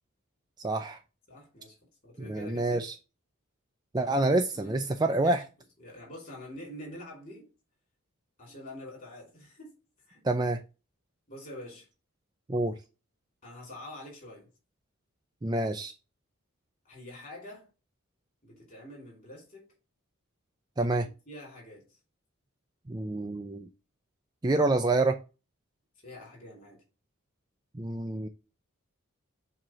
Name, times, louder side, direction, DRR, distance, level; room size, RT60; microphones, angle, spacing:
voice 1, 0.6-1.0 2.3-2.9 3.9-5.4 10.2-10.6 12.5-12.7 15.4-15.9 20.8-21.1 22.9-23.7 24.4-25.2 27.7-28.3, right 2 dB, 20° right, 0.4 m, -27 dB
voice 2, 1.3-1.8 2.0-2.9 4.0-4.1 4.5-4.8 5.2-5.4 5.8-7.5 8.4-9.8 10.1-10.2 11.3-11.9 13.4-14.5 16.8-17.7 18.4-19.7 20.7-21.0 21.3-22.0 26.0-26.8, left 1 dB, 40° left, 4.6 m, -46 dB
7.5 x 2.9 x 6.1 m
head